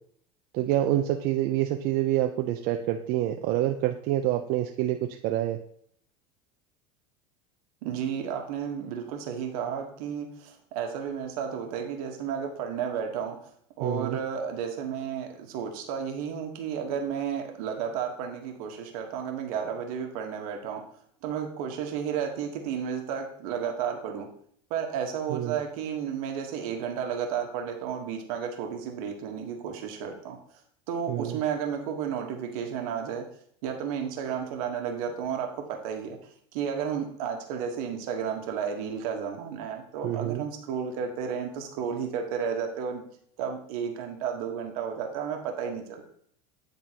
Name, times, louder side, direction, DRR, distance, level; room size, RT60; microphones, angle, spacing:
voice 1, 0.5-5.0 5.2-5.6 13.8-14.2 25.3-25.6 31.1-31.4 34.3-34.4 40.0-40.4, right 13 dB, 55° right, 5 dB, 0.5 m, -27 dB
voice 2, 7.8-13.5 13.8-20.8 21.2-24.3 24.7-30.4 30.9-33.2 33.6-36.2 36.5-43.0 43.4-46.0, right 7 dB, 75° right, 3 dB, 1.3 m, -32 dB
9.4 x 3.7 x 2.9 m, 0.65 s
supercardioid pair, 105°, 19 cm